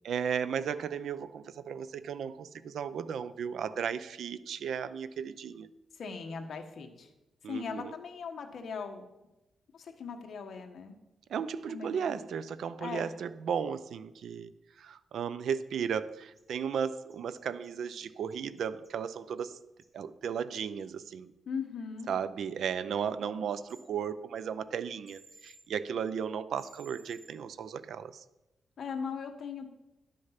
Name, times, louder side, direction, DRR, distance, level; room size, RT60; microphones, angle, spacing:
voice 1, 0.0-5.7 7.4-7.9 11.3-14.5 14.8-19.5 19.9-21.3 22.1-28.2, right 7 dB, 75° right, 15 dB, 0.5 m, -35 dB
voice 2, 5.9-7.1 7.4-9.1 9.7-10.9 11.7-12.2 12.8-13.1 21.5-22.1 28.8-29.7, left 5 dB, 55° left, 4 dB, 1.2 m, -39 dB
sound 1, 16.4-16.5 16.8-18.0 18.3-18.9 19.4-19.5 19.8-19.9 20.2-20.3 23.7-23.8 25.1-25.6 26.6-27.3, right 2 dB, 25° right, 1.8 m, -56 dB
11.5 x 6.4 x 5.8 m, 0.97 s
wide cardioid pair, 150°, 0 cm